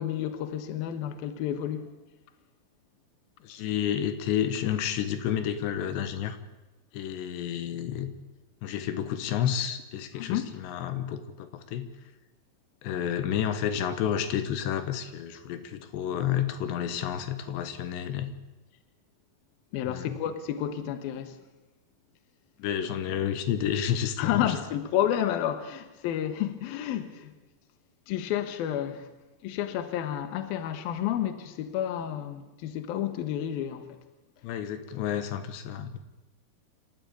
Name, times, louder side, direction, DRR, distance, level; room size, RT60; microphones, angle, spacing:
voice 1, 0.0-1.9 10.1-10.5 19.7-21.4 24.2-27.4 28.1-29.1 29.4-34.0, left 10 dB, 70° left, 2.9 m, -30 dB
voice 2, 3.4-6.4 6.9-8.1 8.6-11.9 12.8-18.3 19.8-20.2 22.6-24.6 34.4-36.0, left 9 dB, 90° left, 3.6 m, -30 dB
27.5 x 13.0 x 8.6 m
omnidirectional pair, 4.8 m